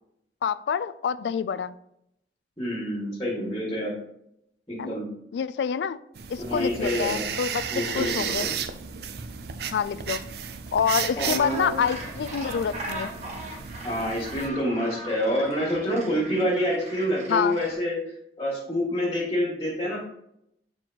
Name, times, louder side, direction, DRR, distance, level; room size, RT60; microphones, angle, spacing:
voice 1, 0.4-1.8 4.8-5.0 5.3-6.0 6.3-8.5 9.7-10.2 10.7-13.1 17.3-17.6, left 7 dB, 75° left, 15 dB, 0.3 m, -27 dB
voice 2, 2.6-3.9 4.7-5.1 6.4-7.2 7.7-8.5 11.2-11.7 13.8-18.0 18.4-20.0, equal, 20° left, -5 dB, 1.9 m, -27 dB
sound 1, 6.2-14.5, right 7 dB, 60° right, 0.4 m, -34 dB
Gull seagull, 11.0-17.7, right 1 dB, 40° right, 1.3 m, -39 dB
7.9 x 4.4 x 2.9 m, 0.76 s
head